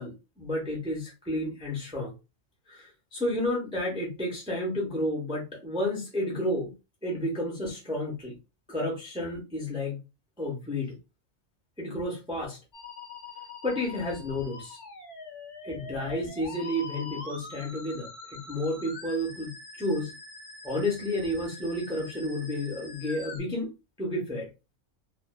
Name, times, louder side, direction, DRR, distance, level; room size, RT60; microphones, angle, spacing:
voice 1, 0.0-2.1 2.7-6.7 7.0-8.4 8.7-10.0 10.4-11.0 11.8-12.6 13.6-14.8 15.6-20.1 20.6-23.7 24.0-24.5, left 1 dB, 5° right, 0.5 m, -31 dB
Musical instrument, 12.7-23.4, left 3 dB, 55° left, 1.0 m, -44 dB
2.5 x 2.3 x 2.2 m
omnidirectional pair, 1.5 m